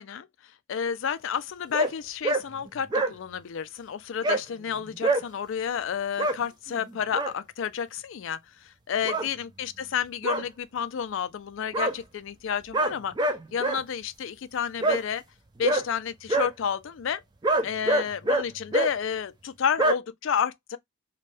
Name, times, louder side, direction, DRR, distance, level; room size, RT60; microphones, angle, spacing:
voice 1, 0.0-13.2 13.5-15.2 15.6-17.2 17.6-20.8, left 7 dB, 60° left, 0.3 m, -31 dB
sound 1, 1.7-1.9 2.2-2.4 2.7-3.1 4.2-4.4 5.0-5.2 6.2-6.4 6.9-7.3 9.0-9.3 10.2-10.4 11.7-11.9 12.7-13.8 14.8-15.0 15.6-15.8 16.3-16.5 17.4-18.4 18.7-18.9 19.8-19.9, right 2 dB, 20° right, 0.3 m, -24 dB
2.6 x 2.2 x 3.2 m
head